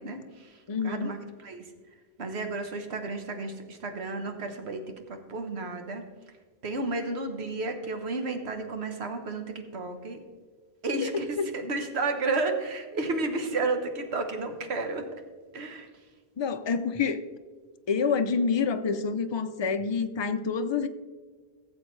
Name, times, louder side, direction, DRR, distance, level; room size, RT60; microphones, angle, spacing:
voice 1, 0.0-0.6 0.8-1.7 2.2-4.8 5.1-6.0 6.6-10.2 10.8-15.0 15.5-15.9, right 3 dB, 85° right, 5 dB, 1.4 m, -32 dB
voice 2, 0.7-1.1 11.0-11.1 11.4-11.5 16.4-17.2 17.9-20.9, left 5 dB, 35° left, 9 dB, 0.4 m, -27 dB
15.5 x 7.5 x 3.2 m, 1.5 s
omnidirectional pair, 1.1 m